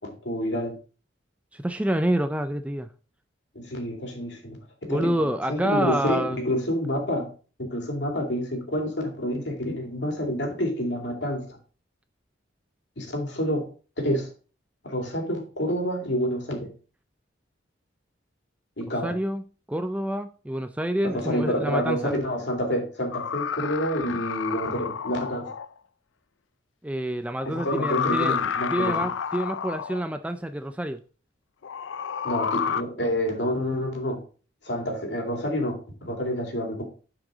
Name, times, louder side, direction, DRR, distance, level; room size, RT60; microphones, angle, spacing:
voice 1, 0.2-0.7 3.5-4.6 4.8-5.1 5.5-7.3 7.6-11.6 13.0-13.7 14.0-14.3 14.8-16.7 18.8-19.1 21.2-25.5 27.4-29.1 32.2-34.2 34.6-36.8, equal, 65° left, 2.5 m, -28 dB
voice 2, 1.5-2.9 4.9-6.4 19.0-19.4 19.7-22.1 26.8-28.4 28.7-31.0, right 1 dB, 5° right, 0.3 m, -27 dB
sound 1, 23.1-25.7 27.4-30.0 31.6-32.8, left 7 dB, 85° left, 0.5 m, -30 dB
9.7 x 4.9 x 3.9 m
head